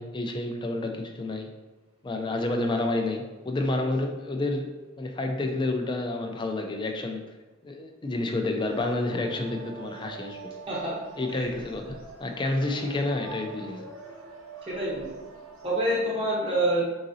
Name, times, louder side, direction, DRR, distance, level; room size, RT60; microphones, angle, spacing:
voice 1, 0.0-1.5 2.0-7.2 7.6-10.4 11.2-13.8, left 2 dB, 20° left, 4 dB, 0.4 m, -29 dB
sound 1, 8.7-16.0, right 3 dB, 60° right, 0.7 m, -44 dB
voice 2, 14.7-15.2 15.6-16.9, right 1 dB, 25° right, -5 dB, 0.8 m, -27 dB
3.9 x 3.8 x 2.7 m, 1.2 s
head